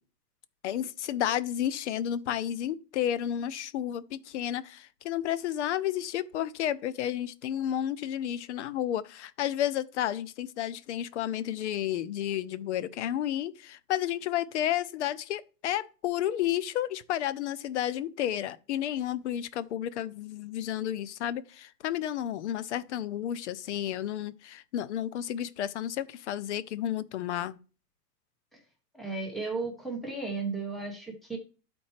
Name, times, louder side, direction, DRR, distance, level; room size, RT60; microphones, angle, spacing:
voice 1, 0.6-27.6, left 11 dB, 50° left, 0.5 m, -31 dB
voice 2, 28.9-31.4, right 4 dB, ahead, 0.8 m, -34 dB
11.5 x 4.4 x 3.1 m
supercardioid pair, 160°, 48 cm